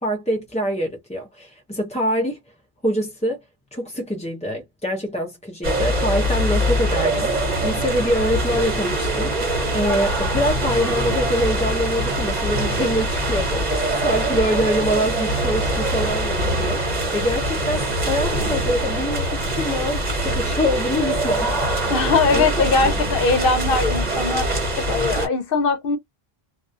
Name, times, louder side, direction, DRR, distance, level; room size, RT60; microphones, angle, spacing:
voice 1, 0.0-2.4 2.8-3.4 3.7-7.3 7.6-21.5 22.3-23.1, equal, 10° left, 0.4 m, -25 dB
sound 1, 5.6-25.3, right 1 dB, 45° right, 1.2 m, -23 dB
voice 2, 21.9-26.0, left 4 dB, 65° left, 0.8 m, -21 dB
2.3 x 2.2 x 2.5 m
omnidirectional pair, 1.0 m